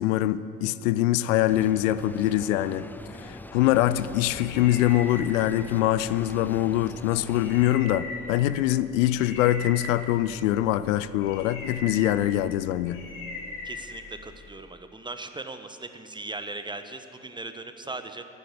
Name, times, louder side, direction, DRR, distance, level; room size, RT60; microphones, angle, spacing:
voice 1, 0.0-2.9 3.2-13.0, left 13 dB, 70° left, 15 dB, 0.6 m, -24 dB
sound 1, 1.5-7.7, left 1 dB, 5° left, 0.6 m, -43 dB
sound 2, 4.3-14.5, left 2 dB, 50° left, 3.8 m, -41 dB
voice 2, 13.6-18.2, right 2 dB, 10° right, 8 dB, 1.1 m, -38 dB
11.5 x 9.6 x 9.9 m, 2.9 s
figure-of-eight pair, 55°, 40 cm